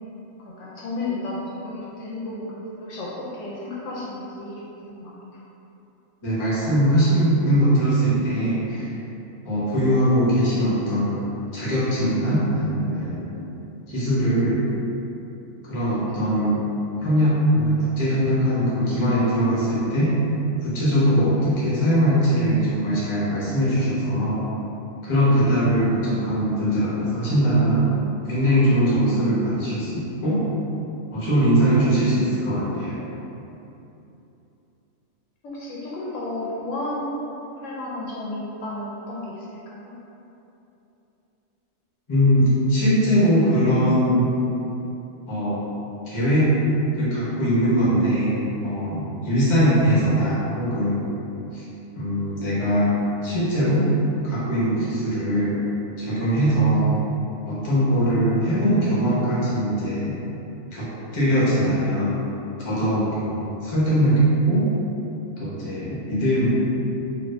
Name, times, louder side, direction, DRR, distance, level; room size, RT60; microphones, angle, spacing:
voice 1, 0.4-5.4 16.0-16.1 35.4-40.0, left 2 dB, 75° left, -6 dB, 0.9 m, -33 dB
voice 2, 6.2-8.9 9.4-11.2 11.5-13.3 13.9-14.6 15.6-16.7 17.0-20.2 20.6-24.4 25.0-27.9 28.2-30.5 31.1-33.0 42.1-44.3 45.3-45.6 46.1-46.5 46.9-51.0 51.5-51.6 51.9-52.9 53.2-53.9 54.2-55.6 56.0-56.9 57.5-60.1 60.7-60.9 61.1-62.2 62.6-64.7 65.4-66.6, equal, 25° left, -9 dB, 0.8 m, -21 dB
2.7 x 2.5 x 3.1 m, 3.0 s
omnidirectional pair, 1.4 m